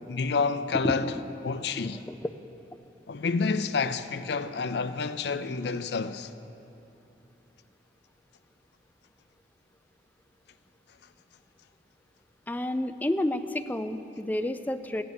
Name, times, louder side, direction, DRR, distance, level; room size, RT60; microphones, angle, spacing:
voice 1, 0.1-1.1 1.4-2.0 3.1-6.3, left 4 dB, 65° left, 0.5 m, -29 dB
voice 2, 0.8-1.6 2.1-2.3 12.5-15.0, left 1 dB, 10° left, 0.4 m, -30 dB
14.5 x 9.5 x 6.6 m
head